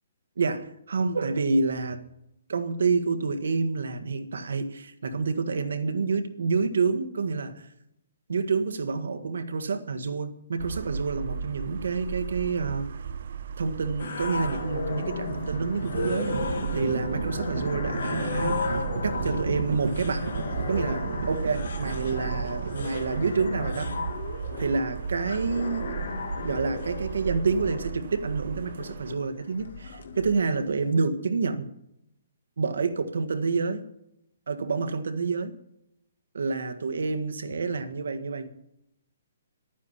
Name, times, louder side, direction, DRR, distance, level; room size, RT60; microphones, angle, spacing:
voice 1, 0.4-2.0 2.5-7.6 8.3-12.9 13.6-18.8 19.0-20.3 20.7-23.9 24.6-26.1 26.4-31.7 32.6-33.8 34.5-35.5 36.3-38.5, right 4 dB, 80° right, 8 dB, 1.6 m, -28 dB
sound 1, 10.6-29.1, right 7 dB, 45° right, 0.5 m, -36 dB
sound 2, 14.0-30.9, left 4 dB, 55° left, 2.2 m, -35 dB
Livestock farm animals working animals, 14.7-23.7, right 3 dB, 60° right, 2.3 m, -34 dB
11.5 x 9.5 x 9.8 m, 0.83 s
hypercardioid pair, 180°, 0 cm